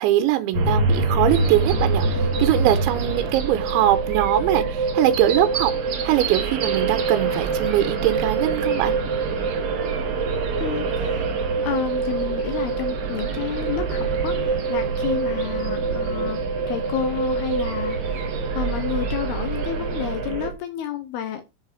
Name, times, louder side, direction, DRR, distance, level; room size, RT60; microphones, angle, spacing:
voice 1, 0.0-5.7 6.0-8.9, right 13 dB, 90° right, 3.1 m, -22 dB
sound 1, 0.5-20.5, right 4 dB, 50° right, 2.7 m, -25 dB
sound 2, 1.3-20.2, right 7 dB, 70° right, 1.5 m, -38 dB
voice 2, 10.6-11.3 11.6-21.4, left 10 dB, 75° left, 2.4 m, -30 dB
8.1 x 7.4 x 4.5 m
omnidirectional pair, 5.3 m